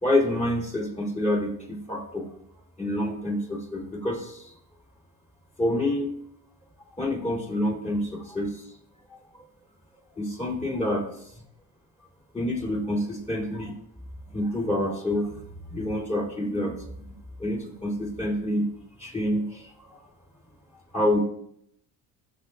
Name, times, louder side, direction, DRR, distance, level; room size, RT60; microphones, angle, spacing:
voice 1, 0.0-2.3 2.8-4.5 5.6-6.1 7.0-8.7 9.1-9.2 10.2-11.1 12.3-13.7 14.3-15.3 15.7-17.0 17.4-18.7 19.0-20.0 20.9-21.2, left 1 dB, 15° left, -2 dB, 2.8 m, -27 dB
18.0 x 6.6 x 2.5 m, 0.72 s
cardioid pair, 110°, 40 cm